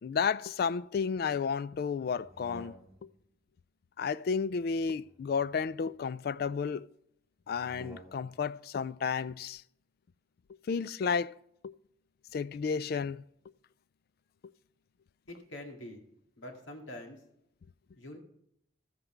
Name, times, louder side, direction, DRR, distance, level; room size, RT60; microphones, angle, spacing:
voice 1, 0.0-2.7 3.0-3.1 4.0-6.9 7.5-9.6 10.7-11.4 11.6-11.7 12.3-13.2, left 6 dB, 50° left, 0.3 m, -32 dB
sound 1, 2.2-3.2 4.5-6.2 7.5-8.5, equal, 15° right, 1.9 m, -54 dB
voice 2, 15.3-16.0 16.4-17.2 18.0-18.2, left 1 dB, 90° left, 2.1 m, -45 dB
14.0 x 8.0 x 4.4 m
head